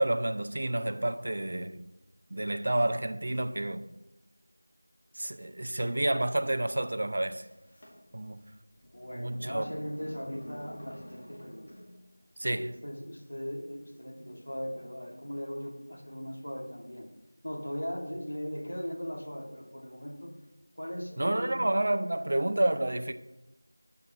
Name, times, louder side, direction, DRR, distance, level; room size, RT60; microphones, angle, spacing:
voice 1, 0.0-1.8 2.3-3.8 5.2-7.5 8.1-8.4 9.1-9.6 12.4-12.8 21.2-23.1, right 1 dB, 35° right, 0.5 m, -29 dB
sound 1, 7.5-12.1, equal, 30° left, 1.9 m, -49 dB
voice 2, 8.9-11.7 12.5-17.1 17.4-20.4 20.8-21.7, equal, 70° left, 1.9 m, -39 dB
8.6 x 6.8 x 5.8 m
figure-of-eight pair, 175°, 0 cm